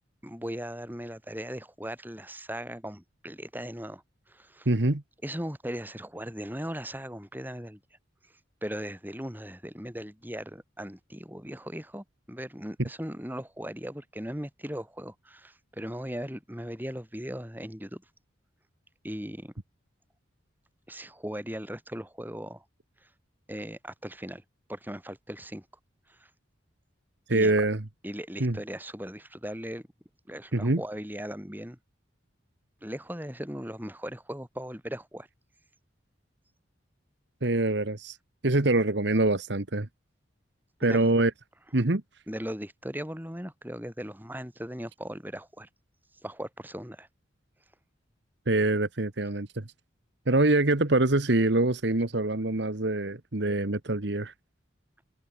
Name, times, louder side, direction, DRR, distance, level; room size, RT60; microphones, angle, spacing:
voice 1, 0.2-4.7 5.2-7.8 8.6-18.0 19.0-19.5 20.9-22.6 23.5-24.4 24.7-25.6 26.1-26.3 27.3-27.5 28.0-29.9 30.3-31.8 32.8-35.3 40.8-41.1 42.3-45.7 46.2-47.1, equal, 10° right, 6.2 m, -38 dB
voice 2, 4.6-5.0 27.3-27.8 28.4-28.6 30.5-30.8 37.4-38.2 38.4-39.9 40.8-41.3 41.7-42.0 48.5-49.7 50.3-54.3, right 2 dB, 60° right, 1.4 m, -24 dB
head